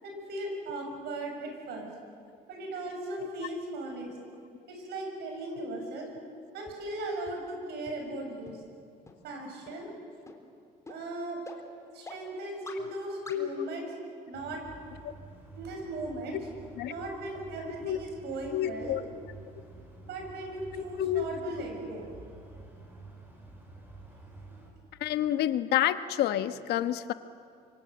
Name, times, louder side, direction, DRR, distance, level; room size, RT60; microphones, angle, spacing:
voice 1, 0.0-1.9 2.5-4.1 4.7-6.1 6.5-8.6 9.2-9.9 10.9-11.4 11.9-14.0 14.3-14.6 15.5-16.5 16.8-19.0 20.0-22.0, right 2 dB, 80° right, 2 dB, 7.5 m, -37 dB
sound 1, 6.7-6.8 7.3-7.4 7.9-8.0 8.5-8.6 9.1-9.2 9.7-9.8 10.3-10.4 10.9-11.0 11.5-11.6 12.1-12.2 12.7-12.8 13.3-13.4, left 3 dB, 20° left, 3.6 m, -45 dB
voice 2, 13.3-13.7 16.8-16.9 17.8-18.0 18.5-19.0 20.7-21.3 25.0-27.1, left 12 dB, 75° left, 10 dB, 1.2 m, -29 dB
sound 2, 14.3-24.7, right 2 dB, 15° right, 6.0 m, -50 dB
27.0 x 24.5 x 7.9 m, 2.3 s
cardioid pair, 110°, 17 cm